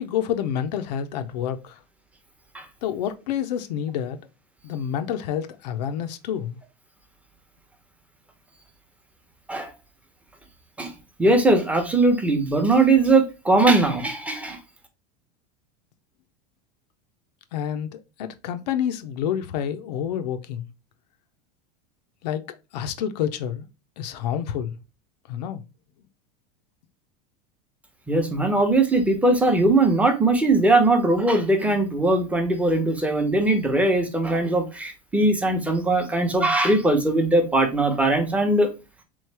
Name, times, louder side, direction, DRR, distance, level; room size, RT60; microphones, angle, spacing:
voice 1, 0.0-1.8 2.8-4.2 4.6-6.6 17.5-20.7 22.2-23.7 24.0-24.8 25.3-25.6, left 9 dB, 85° left, 0.6 m, -28 dB
voice 2, 11.2-14.6 28.1-38.7, right 2 dB, 5° right, 0.8 m, -20 dB
3.7 x 3.2 x 3.3 m
supercardioid pair, 130°, 21 cm